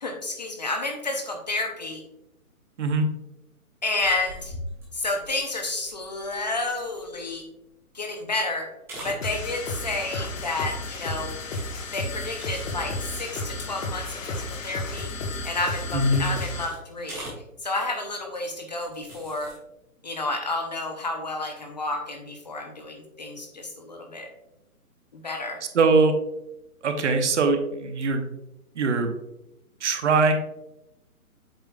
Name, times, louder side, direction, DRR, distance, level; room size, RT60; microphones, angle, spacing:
voice 1, 0.0-2.0 3.8-4.5 4.9-7.5 7.9-8.7 9.0-11.3 11.9-15.1 15.4-17.3 17.6-19.5 20.0-24.3 25.1-25.6, left 2 dB, 30° left, 3 dB, 0.6 m, -30 dB
sound 1, 4.0-7.7 8.1-8.5 8.8-9.3 10.4-10.7 11.2-14.1 14.5-14.6 14.9-15.1 15.4-16.1 17.0-17.5 18.2-18.4 18.8-19.6, equal, 5° right, 1.3 m, -43 dB
sound 2, 9.2-16.8, left 2 dB, 60° left, 1.3 m, -33 dB
voice 2, 15.9-16.3 25.7-26.1 26.8-28.2 28.8-29.1 29.8-30.3, right 3 dB, 50° right, 6 dB, 1.0 m, -21 dB
7.8 x 5.5 x 2.2 m, 0.87 s
hypercardioid pair, 160°, 44 cm